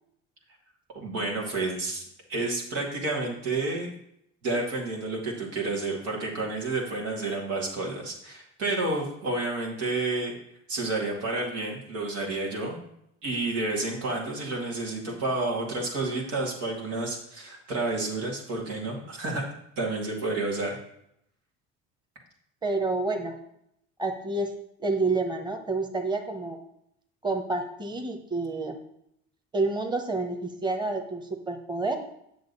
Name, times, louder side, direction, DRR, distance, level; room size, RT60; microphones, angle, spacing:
voice 1, 0.9-2.0 2.3-3.9 4.4-10.3 10.7-12.8 13.2-19.4 19.8-20.8, right 2 dB, 85° right, -2 dB, 2.4 m, -30 dB
voice 2, 22.6-23.4 24.0-24.5 24.8-26.6 27.2-28.8 29.5-32.0, right 3 dB, 15° right, 3 dB, 1.2 m, -29 dB
8.0 x 6.5 x 4.1 m, 0.75 s
supercardioid pair, 80°, 33 cm